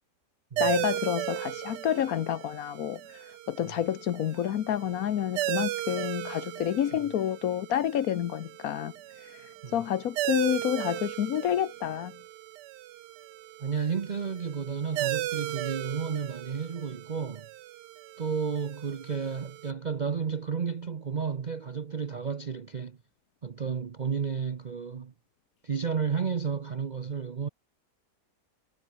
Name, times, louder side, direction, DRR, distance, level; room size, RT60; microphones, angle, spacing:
voice 1, 0.6-8.9 9.2-9.4 9.7-12.2, left 10 dB, 65° left, 1.2 m, -29 dB
sound 1, 0.6-19.7, right 15 dB, 85° right, 1.3 m, -36 dB
voice 2, 13.6-17.5 18.2-23.0 23.4-25.1 25.6-27.5, right 6 dB, 45° right, 0.5 m, -32 dB
omnidirectional pair, 1.8 m